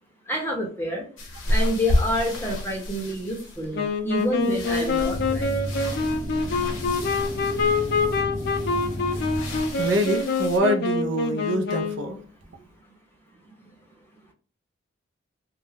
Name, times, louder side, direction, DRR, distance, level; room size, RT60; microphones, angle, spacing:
voice 1, 0.3-1.1 1.5-5.6 13.6-13.7, equal, 10° left, 0.6 m, -28 dB
sound 1, 1.2-10.6, left 1 dB, 70° left, 0.8 m, -31 dB
Wind instrument woodwind instrument, 3.7-12.1, left 4 dB, 55° left, 0.4 m, -26 dB
sound 2, 5.1-10.2, equal, 40° right, 0.8 m, -33 dB
voice 2, 9.4-12.2 12.5-12.6, right 1 dB, 65° right, 0.5 m, -26 dB
2.3 x 2.1 x 3.2 m
head